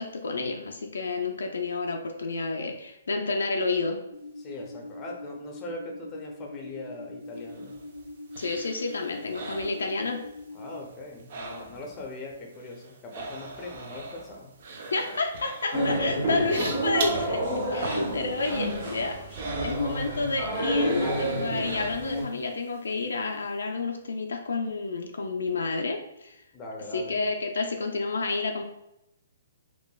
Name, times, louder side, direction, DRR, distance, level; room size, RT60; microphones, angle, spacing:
voice 1, 0.0-4.0 8.4-10.2 14.9-17.4 17.7-19.2 19.6-26.4 26.9-28.6, left 3 dB, 80° left, 3 dB, 0.3 m, -30 dB
sound 1, 4.1-10.8, left 2 dB, 10° right, 0.8 m, -43 dB
voice 2, 4.4-7.7 10.5-14.5 16.1-16.2 26.5-27.2, left 2 dB, 20° left, 0 dB, 0.5 m, -40 dB
sound 2, 7.4-10.4 10.7-12.1 12.3-20.5 20.8-22.4 22.8-22.9, right 3 dB, 55° right, 0.4 m, -40 dB
sound 3, 15.7-22.2, right 1 dB, 35° right, 0.9 m, -29 dB
3.2 x 2.1 x 2.2 m, 0.83 s
hypercardioid pair, 140°, 0 cm